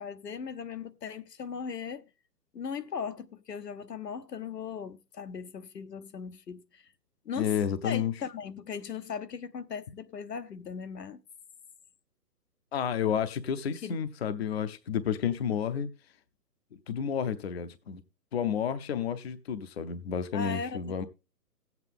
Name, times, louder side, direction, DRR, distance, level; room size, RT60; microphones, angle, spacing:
voice 1, 0.0-2.0 2.5-6.9 7.2-7.6 7.8-11.2 13.8-14.0 20.3-21.0, left 6 dB, 75° left, 1.0 m, -38 dB
voice 2, 7.4-8.1 12.7-15.9 16.9-18.0 18.3-21.0, left 8 dB, 40° left, 0.7 m, -31 dB
15.0 x 8.1 x 3.6 m
figure-of-eight pair, 140°, 48 cm